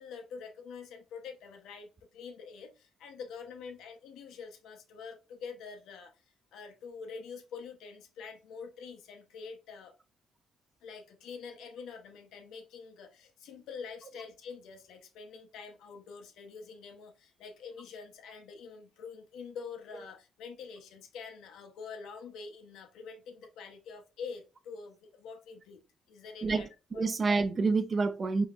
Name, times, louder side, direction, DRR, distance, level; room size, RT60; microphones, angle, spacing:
voice 1, 0.0-6.1 6.5-9.9 10.8-26.7 26.9-27.0, left 5 dB, 85° left, 0.9 m, -46 dB
voice 2, 26.4-28.5, right 4 dB, 35° right, 0.6 m, -28 dB
5.2 x 3.0 x 2.4 m
cardioid pair, 90°, 0 cm